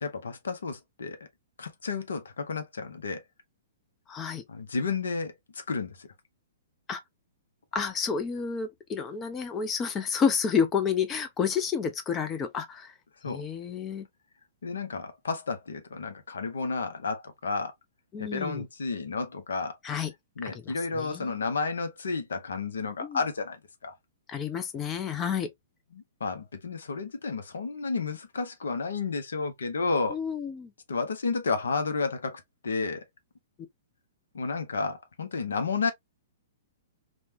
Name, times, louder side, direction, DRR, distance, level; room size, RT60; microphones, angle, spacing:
voice 1, 0.0-1.2 1.6-3.2 4.5-6.1 13.2-13.4 14.6-17.7 18.2-19.8 20.4-24.0 25.9-30.2 30.9-33.0 34.3-35.9, left 4 dB, 65° left, 0.6 m, -32 dB
voice 2, 4.1-4.4 6.9-7.0 7.7-12.9 13.3-14.1 18.1-18.6 19.8-20.1 20.5-21.3 23.0-23.2 24.3-25.5 30.1-30.7, left 6 dB, 20° left, 0.4 m, -30 dB
3.1 x 2.1 x 2.6 m
figure-of-eight pair, 110°, 0 cm